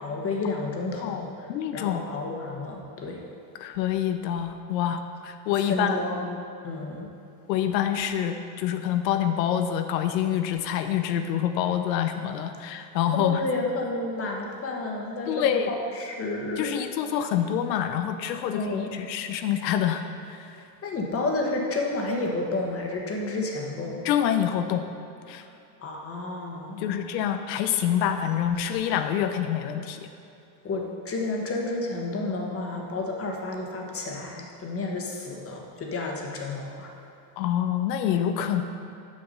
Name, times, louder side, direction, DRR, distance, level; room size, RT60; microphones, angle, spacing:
voice 1, 0.0-1.5 1.7-3.2 5.7-7.1 13.1-16.7 18.5-18.9 20.8-24.1 25.8-27.0 30.6-36.9, left 2 dB, 25° left, 1 dB, 1.3 m, -31 dB
voice 2, 1.0-2.0 3.6-6.0 7.5-13.4 15.3-15.7 16.6-20.6 24.0-24.9 25.3-25.5 26.8-30.1 37.4-38.6, left 9 dB, 80° left, 7 dB, 0.7 m, -26 dB
7.3 x 5.9 x 5.4 m, 2.7 s
supercardioid pair, 110°, 50 cm